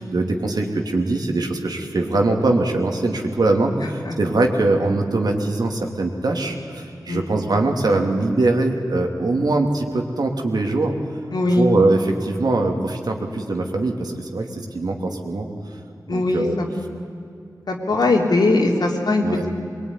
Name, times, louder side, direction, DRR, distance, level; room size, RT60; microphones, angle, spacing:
voice 1, 0.0-10.9 11.5-15.5 16.1-16.5 19.2-19.4, right 2 dB, 75° right, 2 dB, 2.9 m, -22 dB
voice 2, 11.3-11.7 16.1-16.7 17.7-19.2, left 2 dB, 85° left, 0 dB, 3.5 m, -20 dB
23.0 x 22.5 x 9.9 m, 2.6 s
wide cardioid pair, 70°, 7 cm